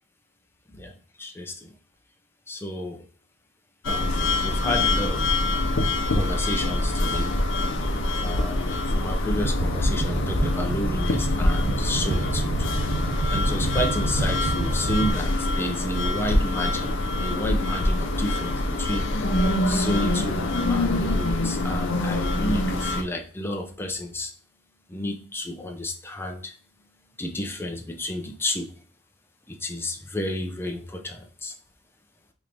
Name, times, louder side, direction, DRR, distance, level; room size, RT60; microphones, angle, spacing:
voice 1, 1.2-1.7 2.5-3.0 3.9-5.2 6.1-7.3 8.2-12.6 13.3-19.2 19.6-24.3 24.9-26.5 27.2-28.7 29.5-31.5, left 1 dB, 10° left, 2 dB, 0.5 m, -31 dB
sound 1, 3.8-23.0, left 2 dB, 60° left, 0.7 m, -25 dB
sound 2, 9.4-15.1, right 2 dB, 50° right, 0.4 m, -28 dB
4.9 x 3.0 x 2.5 m, 0.43 s
head